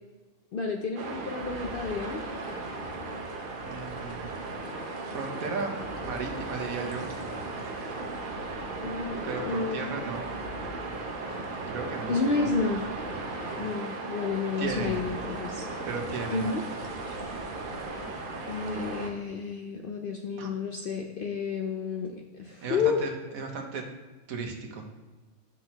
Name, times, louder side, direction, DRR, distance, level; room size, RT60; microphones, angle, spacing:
voice 1, 0.5-2.2 8.8-10.1 11.4-11.5 12.1-12.9 13.6-15.6 16.3-16.6 18.5-23.0, left 4 dB, 60° left, 2 dB, 0.5 m, -31 dB
sound 1, 1.0-19.1, right 3 dB, 45° right, 0.8 m, -37 dB
sound 2, 1.4-19.0, left 4 dB, 85° left, 1.2 m, -48 dB
voice 2, 3.6-4.3 5.1-7.2 9.2-10.3 11.7-12.5 14.6-15.0 15.9-16.4 20.4-20.5 22.6-23.9 24.3-24.9, right 4 dB, 70° right, 3 dB, 1.4 m, -35 dB
7.5 x 6.0 x 2.9 m, 1.3 s
omnidirectional pair, 1.5 m